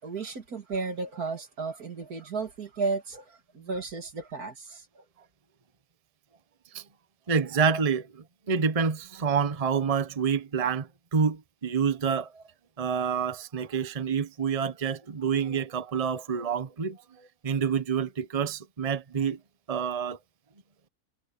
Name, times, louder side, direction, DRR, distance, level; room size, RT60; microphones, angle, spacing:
voice 1, 0.0-5.0, right 4 dB, 80° right, 2.9 m, -34 dB
voice 2, 7.3-12.4 12.8-19.4 19.7-20.2, right 6 dB, 25° right, 1.0 m, -28 dB
omnidirectional pair, 1.6 m